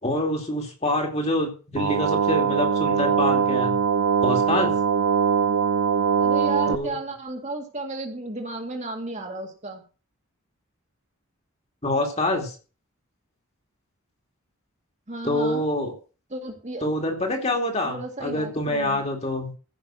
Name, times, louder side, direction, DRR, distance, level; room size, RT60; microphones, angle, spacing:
voice 1, 0.0-3.7 4.2-4.7 6.7-7.0 11.8-12.6 15.2-15.9 16.8-19.5, left 1 dB, 30° left, 2 dB, 2.5 m, -26 dB
sound 1, 1.8-6.8, right 6 dB, 75° right, 0.5 m, -22 dB
voice 2, 6.2-9.8 15.1-15.7 16.3-16.8 17.8-19.0, right 2 dB, 30° right, 3 dB, 2.0 m, -33 dB
15.0 x 6.0 x 6.3 m, 0.36 s
head